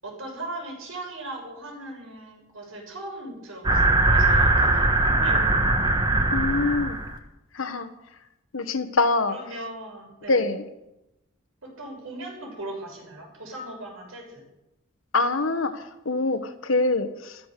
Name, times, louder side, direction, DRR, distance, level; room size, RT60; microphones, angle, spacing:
voice 1, 0.0-5.7 9.3-10.4 11.6-14.4, right 1 dB, 85° right, 1 dB, 6.2 m, -38 dB
sound 1, 3.6-7.2, right 2 dB, 20° right, 1.3 m, -21 dB
voice 2, 6.3-7.0 7.5-7.9 8.5-9.4 10.3-10.6 15.1-17.4, left 3 dB, 75° left, 9 dB, 1.4 m, -24 dB
14.0 x 13.5 x 6.8 m, 0.92 s
head